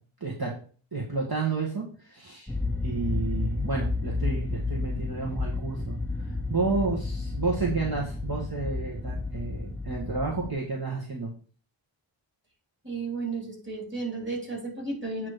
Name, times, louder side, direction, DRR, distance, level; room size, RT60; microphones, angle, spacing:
voice 1, 0.2-0.5 0.9-2.5 2.8-11.3, right 4 dB, 45° right, -3 dB, 1.7 m, -31 dB
sound 1, 2.5-10.5, left 3 dB, 5° left, 0.6 m, -31 dB
voice 2, 12.8-15.3, right 3 dB, 25° right, 0 dB, 3.3 m, -33 dB
8.9 x 3.1 x 6.5 m, 0.41 s
wide cardioid pair, 45°, 49 cm